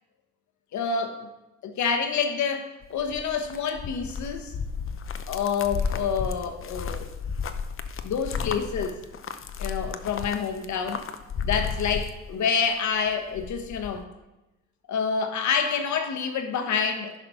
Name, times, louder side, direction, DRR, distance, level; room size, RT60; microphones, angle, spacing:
voice 1, 0.7-1.3 1.6-4.5 5.3-7.1 8.0-9.0 9.6-11.0 11.4-14.1 14.9-17.1, left 6 dB, 70° left, 6 dB, 1.2 m, -27 dB
sound 1, 2.8-12.7 13.1-14.0, left 6 dB, 45° left, 0.7 m, -33 dB
10.5 x 4.2 x 5.7 m, 1.0 s
cardioid pair, 90°, 30 cm